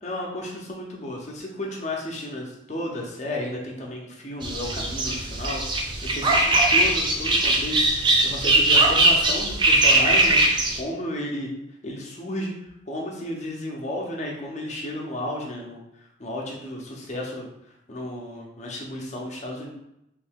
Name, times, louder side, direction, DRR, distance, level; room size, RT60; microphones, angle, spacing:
voice 1, 0.0-11.5 11.8-12.5 12.9-17.5 17.9-19.7, left 1 dB, 35° left, -1 dB, 0.6 m, -33 dB
sound 1, 4.4-10.8, right 2 dB, 25° right, 0.3 m, -20 dB
3.1 x 2.7 x 3.5 m, 0.84 s
head